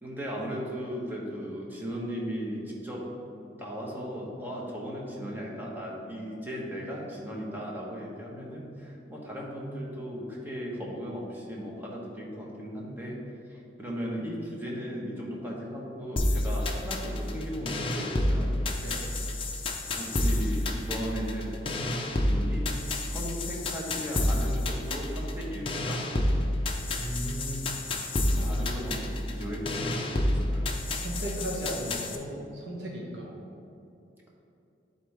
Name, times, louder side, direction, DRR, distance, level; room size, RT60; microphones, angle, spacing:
voice 1, 0.0-3.1 3.6-13.2 13.5-18.5 20.0-21.6 22.1-22.8 23.0-26.1 28.3-30.7, equal, 10° right, -4 dB, 1.2 m, -37 dB
sound 1, 16.2-32.2, left 1 dB, 30° left, 0.6 m, -29 dB
voice 2, 27.0-27.8 28.3-28.5 31.0-33.3, equal, 75° right, -3 dB, 1.6 m, -36 dB
10.5 x 4.2 x 3.4 m, 2.6 s
head